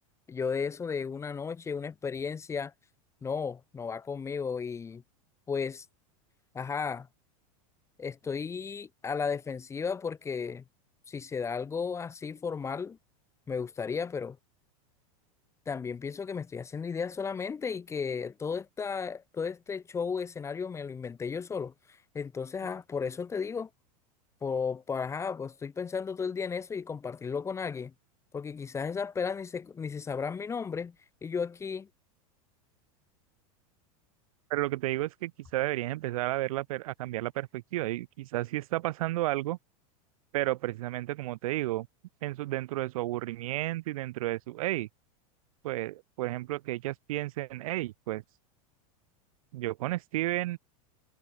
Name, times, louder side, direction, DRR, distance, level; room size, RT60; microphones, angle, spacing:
voice 1, 0.3-2.7 3.2-5.0 5.5-5.8 6.5-7.1 8.0-10.6 11.1-13.0 13.5-14.4 15.7-21.7 22.1-23.7 24.4-27.9 28.3-30.9 31.2-31.9, left 5 dB, 15° left, 0.9 m, -34 dB
voice 2, 34.5-39.6 40.3-41.9 42.2-44.9 45.6-48.2 49.5-50.6, right 17 dB, 75° right, 1.9 m, -32 dB
supercardioid pair, 135°, 18 cm